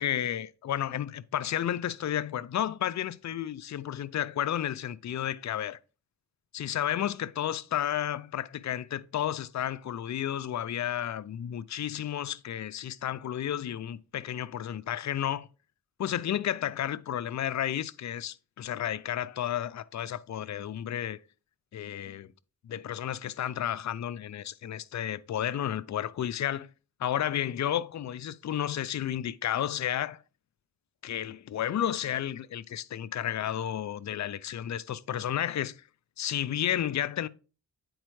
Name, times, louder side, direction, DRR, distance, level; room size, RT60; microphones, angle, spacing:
voice 1, 0.0-5.8 6.5-15.5 16.0-21.2 21.7-22.3 22.6-26.7 27.0-30.2 31.0-35.8 36.2-37.3, left 11 dB, 50° left, 0.5 m, -32 dB
9.2 x 4.2 x 3.1 m
supercardioid pair, 50°, 37 cm